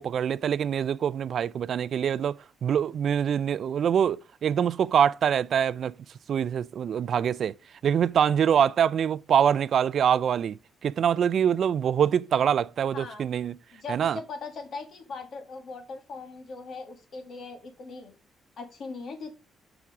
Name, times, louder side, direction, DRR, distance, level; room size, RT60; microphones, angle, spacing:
voice 1, 0.0-5.9 6.3-7.5 7.8-10.6 10.8-13.6 13.9-14.2, right 8 dB, 60° right, 0.3 m, -24 dB
voice 2, 12.9-13.2 13.7-18.2 18.6-19.4, left 4 dB, 60° left, 2.2 m, -40 dB
6.0 x 5.9 x 4.9 m
cardioid pair, 90°, 0 cm